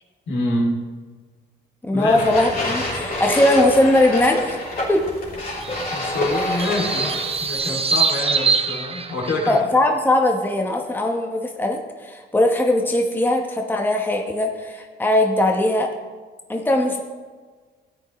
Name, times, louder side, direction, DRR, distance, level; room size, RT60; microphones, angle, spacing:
voice 1, 0.3-0.8 1.9-2.2 5.9-9.6, left 1 dB, 65° left, 0 dB, 2.7 m, -26 dB
voice 2, 1.8-4.6 4.9-5.0 9.5-15.9 16.5-17.0, left 1 dB, 10° left, 3 dB, 1.0 m, -20 dB
sound 1, 2.1-7.6, left 1 dB, 45° left, 3.1 m, -27 dB
sound 2, 5.6-9.6, right 5 dB, 30° right, 0.7 m, -24 dB
13.5 x 8.7 x 3.1 m, 1.5 s
cardioid pair, 90°, 20 cm